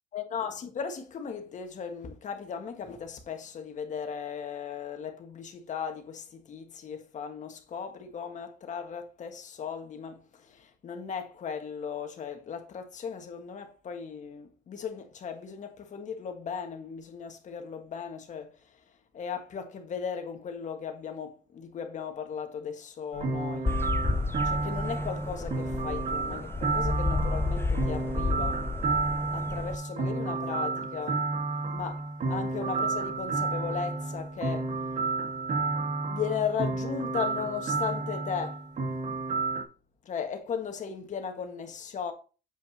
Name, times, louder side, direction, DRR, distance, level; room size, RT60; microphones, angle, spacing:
voice 1, 0.1-23.8 24.4-28.7 29.3-31.2 31.7-34.7 36.1-38.6 40.0-42.1, left 7 dB, 45° left, 1.6 m, -37 dB
sound 1, 23.1-39.6, right 3 dB, 45° right, 1.5 m, -31 dB
sound 2, 23.7-29.7, left 3 dB, 15° left, 0.5 m, -31 dB
7.9 x 5.3 x 2.8 m
cardioid pair, 110°, 17 cm